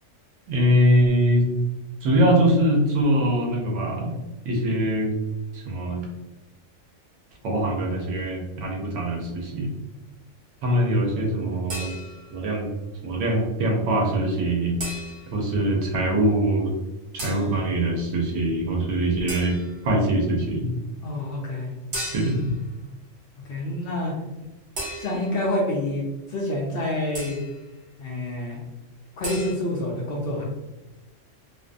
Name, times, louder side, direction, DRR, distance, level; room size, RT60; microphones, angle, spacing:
voice 1, 0.5-1.5 2.0-4.1 4.4-5.1 5.5-6.0 7.4-9.7 10.6-12.0 12.3-12.7 13.0-14.8 15.3-16.7 17.1-19.6 19.8-20.7 22.1-22.5, right 1 dB, 75° right, 0 dB, 0.9 m, -22 dB
sound 1, 11.7-12.4 14.8-15.4 17.2-17.6 19.3-19.8 21.9-22.6 24.8-25.5 27.1-27.6 29.2-29.5, right 1 dB, 50° right, 0.7 m, -35 dB
voice 2, 21.0-21.7 23.4-24.1 25.0-27.4 28.0-28.6 29.2-30.4, left 1 dB, 65° left, -3 dB, 0.6 m, -27 dB
2.5 x 2.2 x 2.5 m, 1.1 s
omnidirectional pair, 1.3 m